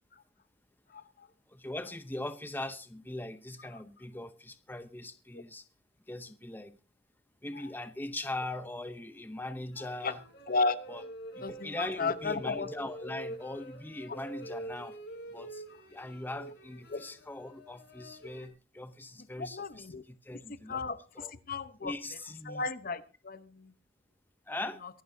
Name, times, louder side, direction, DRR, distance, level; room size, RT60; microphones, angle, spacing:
voice 1, 1.5-5.6 6.1-6.8 7.4-10.2 10.9-11.0 11.4-15.0 15.3-15.6 15.9-21.3 21.8-22.7 24.5-24.8, left 1 dB, 10° left, 0.7 m, -41 dB
sound 1, 9.7-18.5, right 1 dB, 70° left, 4.1 m, -46 dB
voice 2, 11.4-12.7 16.9-17.0 19.4-20.0 20.7-21.9 22.5-23.4, left 3 dB, 50° left, 0.9 m, -33 dB
23.5 x 11.5 x 2.7 m
head